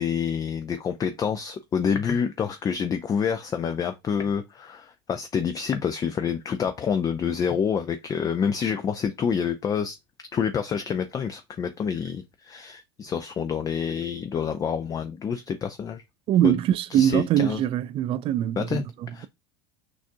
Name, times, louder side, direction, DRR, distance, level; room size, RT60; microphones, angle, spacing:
voice 1, 0.0-10.0 10.3-16.0 16.4-16.6 16.9-17.6 18.6-19.3, left 7 dB, 25° left, 0.5 m, -27 dB
voice 2, 16.3-18.8, right 11 dB, 45° right, 0.4 m, -22 dB
6.1 x 2.4 x 2.6 m
hypercardioid pair, 95°, 13 cm